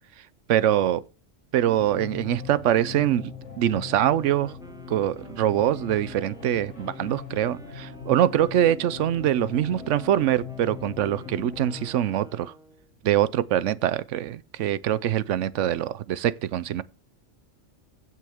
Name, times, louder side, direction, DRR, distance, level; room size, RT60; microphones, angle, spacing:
voice 1, 0.5-1.0 1.5-4.5 4.9-12.5 13.0-16.8, right 11 dB, 75° right, 0.9 m, -24 dB
sound 1, 1.6-11.8, left 6 dB, 70° left, 2.0 m, -40 dB
Wind instrument woodwind instrument, 4.0-12.9, right 1 dB, 5° right, 1.1 m, -51 dB
15.5 x 6.3 x 3.5 m
omnidirectional pair, 1.3 m